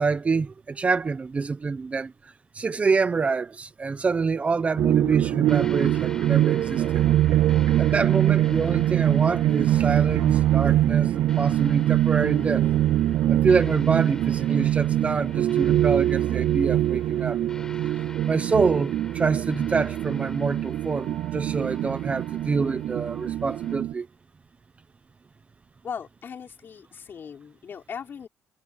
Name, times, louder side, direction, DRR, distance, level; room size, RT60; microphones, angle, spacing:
voice 1, 0.0-2.1 2.5-7.1 7.8-12.7 13.3-17.4 18.3-24.1, right 4 dB, 25° right, 0.8 m, -26 dB
sound 1, 4.8-23.9, right 13 dB, 65° right, 0.4 m, -23 dB
sound 2, 5.4-23.8, left 2 dB, 10° left, 6.2 m, -46 dB
voice 2, 25.8-28.3, left 7 dB, 40° left, 5.6 m, -38 dB
cardioid pair, 155°, 6 cm